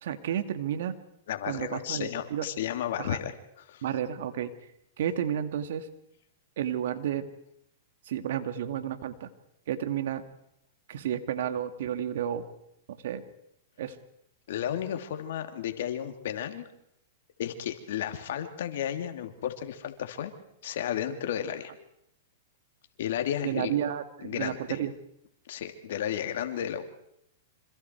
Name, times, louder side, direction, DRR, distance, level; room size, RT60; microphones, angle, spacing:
voice 1, 0.0-0.9 1.5-2.5 3.0-3.2 3.8-4.5 5.0-5.9 6.6-7.3 8.1-9.3 9.7-10.2 10.9-12.4 13.0-13.2 13.8-14.0 23.4-24.9, right 10 dB, 70° right, 9 dB, 2.3 m, -31 dB
voice 2, 1.3-3.3 3.6-3.8 14.5-16.6 17.4-20.3 20.6-21.7 23.0-23.7 24.2-24.8 25.5-26.8, left 10 dB, 70° left, 6 dB, 3.0 m, -33 dB
27.0 x 26.5 x 4.7 m, 0.77 s
hypercardioid pair, 130°, 0 cm